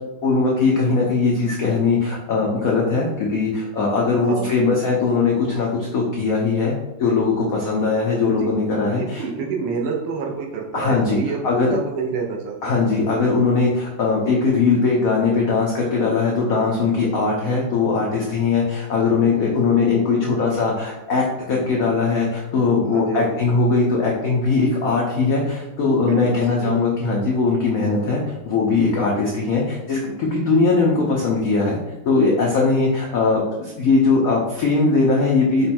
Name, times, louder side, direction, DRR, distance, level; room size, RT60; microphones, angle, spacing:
voice 1, 0.2-6.7 7.0-9.2 10.7-11.2 11.4-11.7 12.6-31.8 32.0-35.7, left 4 dB, 85° left, -2 dB, 0.7 m, -20 dB
voice 2, 4.2-4.7 8.4-12.7 22.9-23.4 26.1-26.8, right 5 dB, 90° right, 0 dB, 1.6 m, -28 dB
5.3 x 2.2 x 4.2 m, 1.0 s
omnidirectional pair, 2.4 m